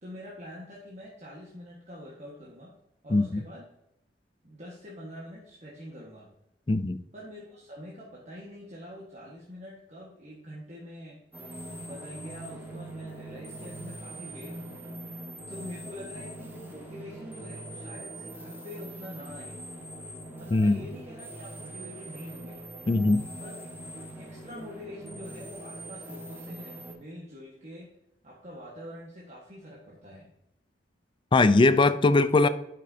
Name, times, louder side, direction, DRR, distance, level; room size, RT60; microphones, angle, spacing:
voice 1, 0.0-2.7 3.0-3.7 4.4-6.3 7.1-11.2 11.8-14.8 15.5-19.6 20.4-22.6 23.4-23.6 23.9-27.9 28.2-30.3, equal, 40° right, 1.5 m, -45 dB
voice 2, 6.7-7.0 20.5-20.8 22.9-23.3 31.3-32.5, left 3 dB, 30° left, 0.4 m, -20 dB
sound 1, 11.3-26.9, right 1 dB, 10° right, 1.3 m, -42 dB
10.5 x 6.0 x 2.7 m
head